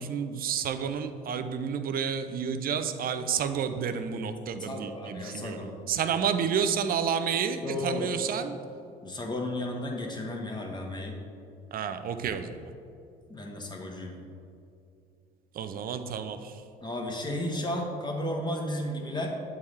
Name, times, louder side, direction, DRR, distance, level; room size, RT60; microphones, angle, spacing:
voice 1, 0.0-8.6 11.7-12.7 15.5-16.6, right 7 dB, 45° right, 9 dB, 0.5 m, -30 dB
voice 2, 4.6-5.7 7.6-8.1 9.0-11.1 13.3-14.1 16.8-19.3, left 1 dB, 20° left, 0 dB, 1.2 m, -33 dB
8.2 x 3.6 x 3.2 m, 2.5 s
hypercardioid pair, 60°, 20 cm